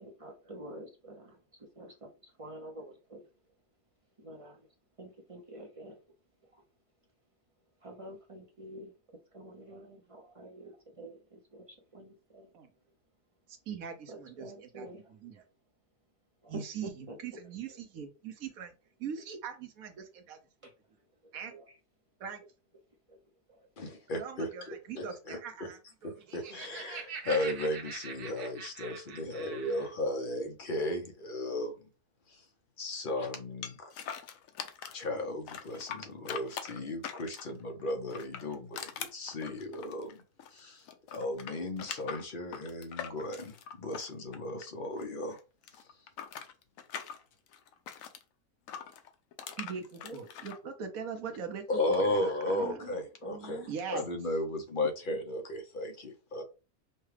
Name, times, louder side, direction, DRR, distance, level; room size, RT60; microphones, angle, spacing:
voice 1, 0.0-1.4 1.8-2.1 2.4-3.2 4.2-4.6 5.0-5.9 7.8-8.9 9.3-11.6 11.9-12.5 14.1-15.0 16.4-17.2 21.5-21.6 49.5-49.6 50.0-50.2 52.5-53.7, right 1 dB, 30° right, 0 dB, 0.6 m, -47 dB
voice 2, 13.7-15.4 16.5-18.7 19.0-20.4 21.3-21.5 22.2-22.4 24.2-26.2 49.6-52.8 53.7-54.1, right 6 dB, 70° right, 6 dB, 1.2 m, -41 dB
voice 3, 23.8-25.7 26.0-31.7 32.3-32.4 32.8-33.8 34.9-40.1 40.5-40.8 41.1-43.5 43.8-45.4 51.7-56.4, left 1 dB, 45° left, 4 dB, 0.8 m, -35 dB
Laughter, 26.1-29.9, right 5 dB, 90° right, 1.4 m, -44 dB
sound 1, 33.6-35.1 35.5-37.6 38.1-40.6 40.8-45.0 45.3-48.2 48.7-50.6, left 8 dB, 70° left, 1.0 m, -42 dB
5.5 x 2.3 x 3.3 m, 0.32 s
omnidirectional pair, 1.6 m